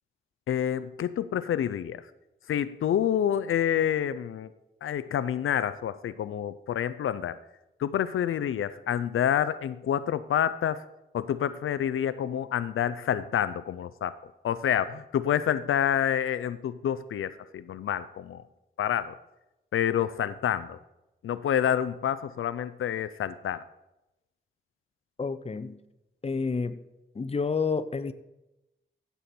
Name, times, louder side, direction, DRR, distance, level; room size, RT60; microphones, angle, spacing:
voice 1, 0.5-2.0 2.5-4.5 4.8-7.4 7.8-10.8 11.1-14.1 14.4-18.4 18.8-19.1 19.7-20.8 21.2-23.6, left 9 dB, 85° left, 14 dB, 0.4 m, -28 dB
voice 2, 25.2-25.8 26.2-26.8 27.1-28.1, left 4 dB, 30° left, 12 dB, 0.6 m, -29 dB
15.0 x 6.9 x 4.3 m, 0.96 s
cardioid pair, 75°, 21 cm